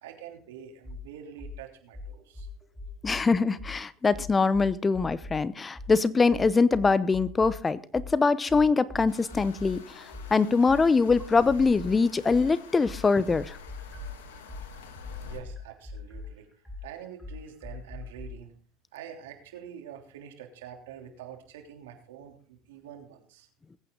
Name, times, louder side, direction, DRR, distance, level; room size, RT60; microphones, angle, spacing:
voice 1, 0.0-2.5 15.2-16.5 16.8-18.5 18.9-23.5, right 9 dB, 85° right, 4 dB, 3.2 m, -46 dB
sound 1, 0.8-1.0 1.4-1.6 1.9-3.2 3.6-3.7 4.1-5.4 5.7-5.9 6.3-7.6 7.9-11.9 12.3-18.3, left 3 dB, ahead, 6.3 m, -41 dB
voice 2, 3.0-10.0 10.3-13.6, left 4 dB, 20° left, 17 dB, 0.8 m, -23 dB
sound 2, 9.1-15.4, left 5 dB, 85° left, 2.5 m, -46 dB
21.0 x 9.0 x 3.9 m, 0.43 s
supercardioid pair, 100°, 0 cm